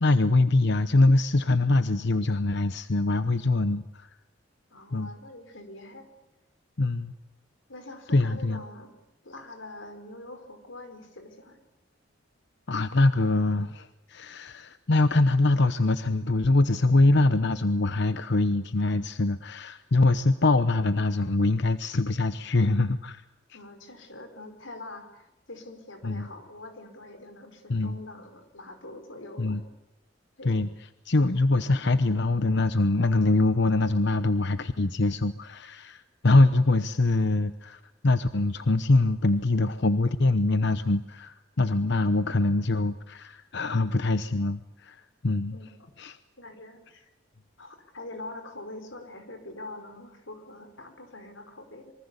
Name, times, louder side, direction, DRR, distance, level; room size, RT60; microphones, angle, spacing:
voice 1, 0.0-4.1 4.9-5.1 6.8-7.1 8.1-8.6 12.7-23.2 26.0-26.3 27.7-28.0 29.4-29.6 30.4-30.7 31.0-45.6 46.0-46.2, left 2 dB, 65° left, 11 dB, 0.9 m, -24 dB
voice 2, 4.7-6.1 7.7-8.9 9.2-11.6 23.5-29.6 30.4-30.6 45.5-45.9 46.4-47.1 47.6-51.9, left 2 dB, 90° left, 8 dB, 4.8 m, -44 dB
26.0 x 24.0 x 8.3 m, 0.95 s
head